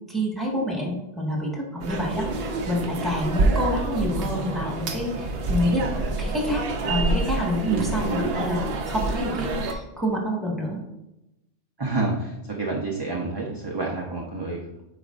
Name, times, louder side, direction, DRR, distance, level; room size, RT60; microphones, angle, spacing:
voice 1, 0.1-10.8, equal, ahead, -2 dB, 1.5 m, -28 dB
sound 1, 1.8-9.7, right 2 dB, 60° right, 0.9 m, -27 dB
voice 2, 7.7-8.2 11.8-14.7, right 3 dB, 25° right, -2 dB, 0.6 m, -28 dB
8.0 x 5.1 x 2.5 m, 0.92 s
omnidirectional pair, 1.3 m